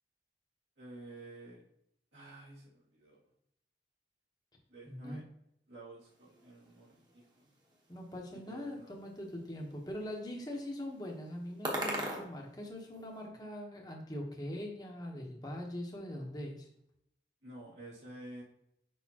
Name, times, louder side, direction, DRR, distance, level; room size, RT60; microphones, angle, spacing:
voice 1, 0.8-1.6 2.1-3.2 4.7-5.2 5.7-7.5 8.5-8.9 17.4-18.4, right 2 dB, 90° right, -5 dB, 2.5 m, -50 dB
voice 2, 4.9-5.2 7.9-16.7, left 1 dB, 20° left, 0 dB, 1.0 m, -42 dB
sound 1, 6.0-13.2, right 1 dB, 25° right, 1.1 m, -44 dB
6.4 x 5.1 x 2.9 m, 0.76 s
head